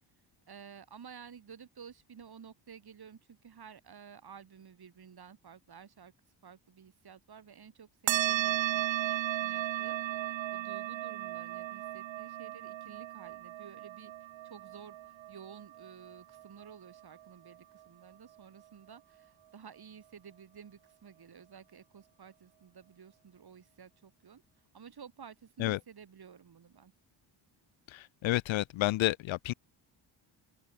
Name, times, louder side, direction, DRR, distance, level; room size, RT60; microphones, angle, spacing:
voice 1, 0.5-6.1 6.4-14.1 14.4-15.0 15.3-24.4 24.7-26.9, right 7 dB, 50° right, 5.7 m, -53 dB
sound 1, 8.1-17.0, right 15 dB, 70° right, 0.7 m, -35 dB
voice 2, 27.9-29.5, left 17 dB, 75° left, 0.6 m, -30 dB
open air
cardioid pair, 95°, 47 cm